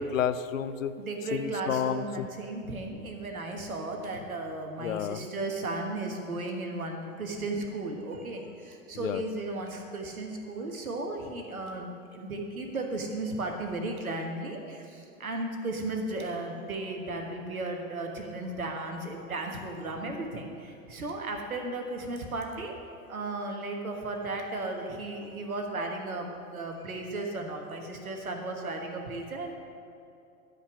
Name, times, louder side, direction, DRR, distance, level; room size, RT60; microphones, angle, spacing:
voice 1, 0.0-0.9 1.3-2.3 4.8-5.2 8.9-9.2, left 8 dB, 65° left, 12 dB, 0.6 m, -30 dB
voice 2, 1.0-8.4 8.9-14.8 15.2-20.5 20.9-22.7 23.1-29.6, right 2 dB, 75° right, 3 dB, 1.5 m, -35 dB
13.0 x 5.3 x 6.3 m, 2.7 s
figure-of-eight pair, 95°, 43 cm